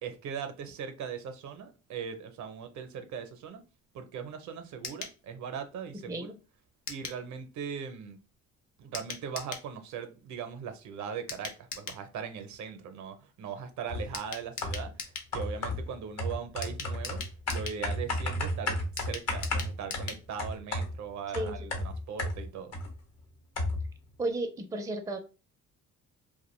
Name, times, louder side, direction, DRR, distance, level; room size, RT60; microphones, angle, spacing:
voice 1, 0.0-3.6 3.9-6.3 6.9-8.2 8.8-17.2 17.5-22.7, right 7 dB, 70° right, 0.6 m, -39 dB
sound 1, 4.8-5.2 6.9-7.2 8.9-9.7 11.3-12.0 14.1-15.3 16.6-17.8 19.0-20.2 20.5-20.6 20.9-21.0, left 5 dB, 90° left, 0.6 m, -40 dB
sound 2, 13.9-14.2 14.6-15.0 15.3-22.9 23.2-23.3 23.6-24.0, left 1 dB, 55° left, 1.0 m, -33 dB
voice 2, 24.2-25.2, right 2 dB, 10° right, 0.4 m, -33 dB
2.3 x 2.1 x 3.0 m
cardioid pair, 90°, 30 cm